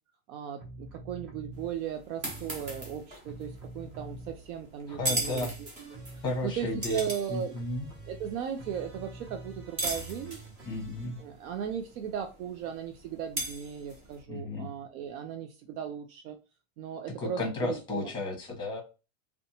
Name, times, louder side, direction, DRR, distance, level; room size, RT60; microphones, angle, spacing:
voice 1, 0.3-6.0 6.4-7.6 8.1-10.4 11.2-16.4 16.8-18.1, right 8 dB, 70° right, 5 dB, 0.5 m, -37 dB
sound 1, 0.6-1.7 2.2-4.6 4.9-11.2, right 2 dB, 40° right, 1.2 m, -47 dB
sound 2, 1.5-14.2, right 1 dB, 20° right, 0.4 m, -40 dB
voice 2, 4.9-5.5 6.2-7.0 7.3-7.9 10.6-11.2 14.3-14.7 17.2-18.8, left 2 dB, 10° left, 0 dB, 0.9 m, -33 dB
2.5 x 2.2 x 2.7 m, 0.30 s
supercardioid pair, 155°, 44 cm